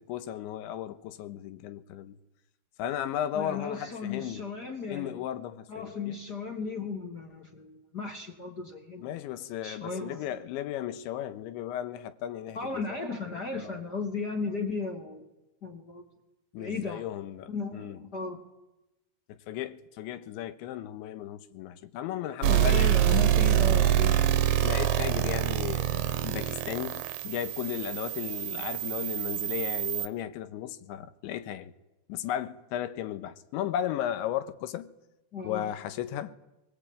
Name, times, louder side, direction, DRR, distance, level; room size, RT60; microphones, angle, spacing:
voice 1, 0.0-2.2 2.8-4.5 4.9-6.2 9.0-13.0 13.6-13.7 16.5-18.0 19.3-23.2 23.7-23.8 24.6-31.7 32.1-34.9 35.4-36.3, left 11 dB, 85° left, 3.4 m, -35 dB
voice 2, 3.3-5.2 5.7-9.0 9.6-10.2 12.5-15.2 15.6-16.0 16.6-17.1 17.5-18.4 22.5-24.3 35.3-35.7, left 4 dB, 30° left, 2.0 m, -35 dB
sound 1, 22.4-30.1, right 12 dB, 70° right, 2.3 m, -26 dB
24.0 x 21.0 x 8.9 m
omnidirectional pair, 5.3 m